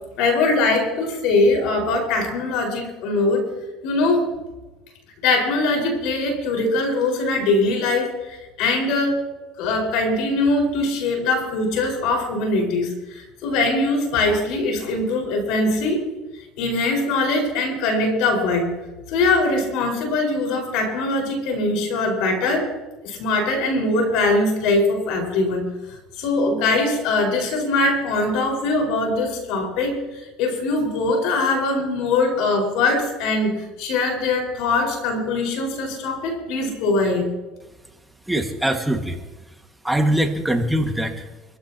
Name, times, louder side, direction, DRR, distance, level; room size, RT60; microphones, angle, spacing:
voice 1, 0.2-3.4 3.8-4.3 5.2-9.3 9.6-16.1 16.6-18.7 19.1-22.7 23.0-37.2, left 2 dB, 75° left, 2 dB, 4.9 m, -22 dB
voice 2, 38.3-39.2 39.8-41.3, right 1 dB, 5° right, 4 dB, 1.8 m, -22 dB
25.0 x 15.0 x 2.9 m, 1.1 s
supercardioid pair, 100°, 0 cm